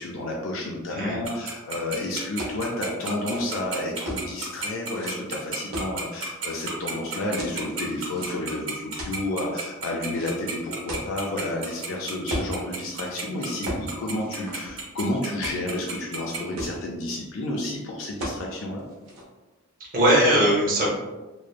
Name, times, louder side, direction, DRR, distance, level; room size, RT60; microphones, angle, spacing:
voice 1, 0.0-18.8, left 1 dB, 60° left, -2 dB, 0.4 m, -31 dB
Tick-tock, 1.2-16.4, right 6 dB, 65° right, 1.1 m, -32 dB
sound 1, 2.4-2.6 3.1-4.3 4.9-5.1 5.7-6.7 7.4-8.6 9.0-9.4 10.1-11.8 12.3-12.6 12.9-13.1 13.7-13.9 14.2-15.0 15.4-16.0 16.3-16.4 16.6-17.2 18.2-18.4 18.8-19.2, right 1 dB, 85° right, 0.7 m, -35 dB
voice 2, 19.8-21.0, right 1 dB, 40° right, -6 dB, 0.7 m, -20 dB
3.1 x 2.0 x 2.3 m, 1.2 s
head